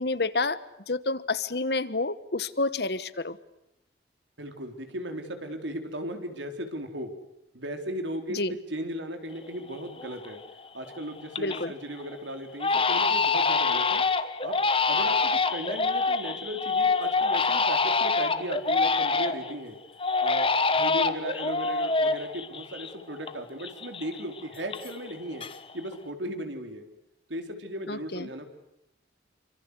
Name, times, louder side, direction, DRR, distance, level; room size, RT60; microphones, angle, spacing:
voice 1, 0.0-3.4 8.3-8.5 11.4-11.7 27.9-28.3, left 3 dB, 60° left, 15 dB, 1.2 m, -29 dB
voice 2, 4.4-7.1 7.5-10.4 10.7-14.0 14.4-14.6 14.9-19.8 20.2-25.5 25.7-26.8 27.3-28.5, right 1 dB, 80° right, 6 dB, 4.1 m, -36 dB
Crying sobbing, 9.4-9.5 10.0-10.5 10.9-11.7 12.0-12.2 12.6-19.5 20.0-23.3 23.6-25.1 25.4-25.9, left 4 dB, 30° left, 1.2 m, -26 dB
28.0 x 25.5 x 8.2 m, 0.87 s
head